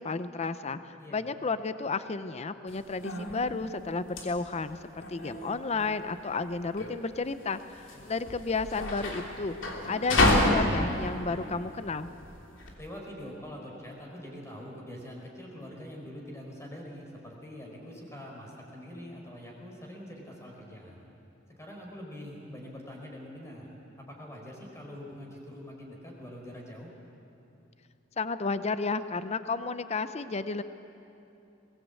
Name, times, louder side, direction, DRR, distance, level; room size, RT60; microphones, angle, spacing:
voice 1, 0.0-12.1 28.2-30.6, left 4 dB, 35° left, 12 dB, 0.6 m, -32 dB
sound 1, 2.7-12.7, left 1 dB, 80° left, 3.1 m, -30 dB
voice 2, 12.8-21.1 21.6-26.9, equal, 15° left, -1 dB, 4.5 m, -44 dB
22.0 x 18.5 x 8.3 m, 2.8 s
head